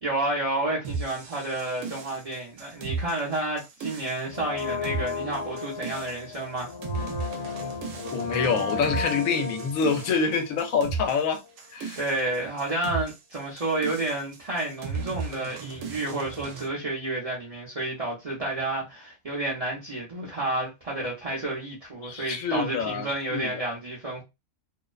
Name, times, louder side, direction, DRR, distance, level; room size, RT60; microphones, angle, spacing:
voice 1, 0.0-6.7 12.0-24.2, right 2 dB, 40° right, 0.5 m, -30 dB
sound 1, 0.8-16.7, right 4 dB, 75° right, 0.9 m, -36 dB
Brass instrument, 4.3-11.2 11.4-11.5, left 4 dB, 40° left, 0.7 m, -35 dB
voice 2, 8.1-11.4 11.7-12.0 22.0-23.7, left 5 dB, 80° left, 1.0 m, -26 dB
2.6 x 2.0 x 2.3 m
omnidirectional pair, 1.4 m